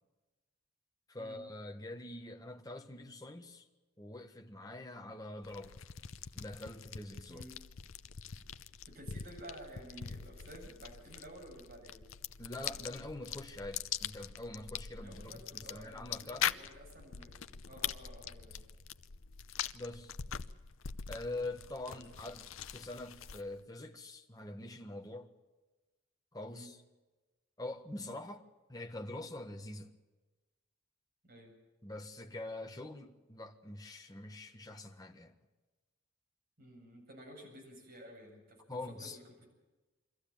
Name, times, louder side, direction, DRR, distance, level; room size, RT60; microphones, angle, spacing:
voice 1, 1.1-3.7 4.0-5.8 6.3-7.4 12.4-16.6 19.7-20.1 21.1-22.5 22.7-25.3 26.3-26.8 27.6-28.4 28.7-29.9 31.8-35.3 38.7-39.2, left 2 dB, 20° left, 1.5 m, -44 dB
sound 1, 5.4-23.6, left 8 dB, 85° left, 0.7 m, -43 dB
voice 2, 8.9-12.0 14.9-18.6 21.8-22.0 22.3-22.4 26.5-26.7 31.2-31.5 36.6-39.5, right 1 dB, 50° right, 8.0 m, -53 dB
24.0 x 14.5 x 8.9 m
head